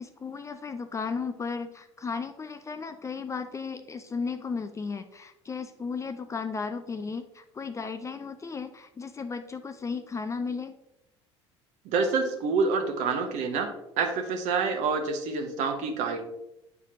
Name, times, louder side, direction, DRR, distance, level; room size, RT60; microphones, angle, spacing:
voice 1, 0.0-10.8, left 5 dB, 20° left, 10 dB, 0.4 m, -35 dB
voice 2, 11.8-13.7 14.0-16.2, right 4 dB, 50° right, 4 dB, 1.1 m, -27 dB
8.9 x 4.8 x 2.8 m, 0.88 s
figure-of-eight pair, 65°, 15 cm